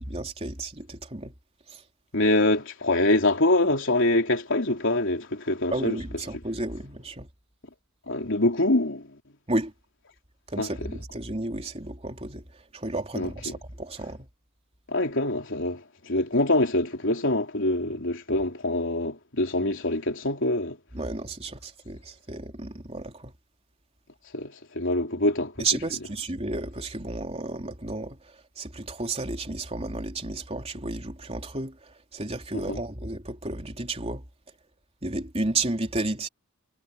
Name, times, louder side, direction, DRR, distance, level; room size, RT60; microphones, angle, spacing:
voice 1, 0.0-1.3 1.7-1.8 5.7-7.3 9.5-9.7 10.5-14.3 20.9-23.3 25.6-34.2 35.0-36.3, right 2 dB, 30° right, 3.6 m, -32 dB
voice 2, 2.1-6.0 8.1-9.1 10.6-10.7 13.2-13.3 14.9-20.8 24.3-25.7 32.5-32.8, left 1 dB, 60° left, 3.6 m, -25 dB
head